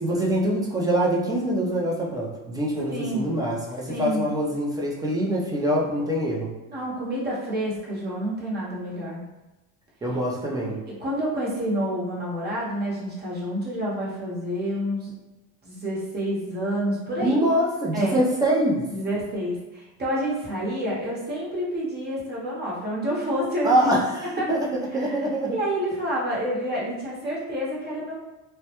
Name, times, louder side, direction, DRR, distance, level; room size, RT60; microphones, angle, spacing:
voice 1, 0.0-6.5 10.0-10.8 17.2-18.9 23.6-24.0 24.5-25.6, right 1 dB, 10° right, -3 dB, 0.4 m, -24 dB
voice 2, 2.9-3.3 3.9-4.3 6.7-9.2 10.9-15.1 15.6-17.4 17.9-18.2 18.9-23.7 24.4-24.5 24.9-28.1, equal, 25° right, -5 dB, 0.9 m, -28 dB
2.1 x 2.1 x 2.8 m, 1.1 s
supercardioid pair, 110°, 37 cm